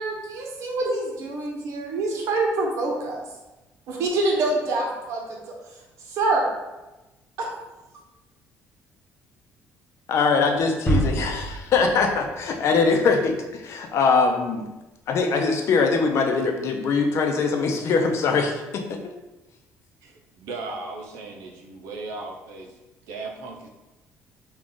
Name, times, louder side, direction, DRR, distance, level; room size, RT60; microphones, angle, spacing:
voice 1, 0.0-3.2 3.9-5.5 6.1-6.5 7.4-7.5, right 2 dB, 70° right, -1 dB, 1.0 m, -26 dB
voice 2, 10.1-14.7 15.1-18.6 18.9-19.0, left 4 dB, 60° left, 4 dB, 0.6 m, -22 dB
sound 1, 10.9-12.8, right 1 dB, 10° left, 1.0 m, -27 dB
voice 3, 20.0-22.8 23.1-23.7, right 3 dB, 85° right, 2 dB, 0.6 m, -37 dB
3.7 x 2.4 x 3.7 m, 1.0 s
cardioid pair, 105°, 5 cm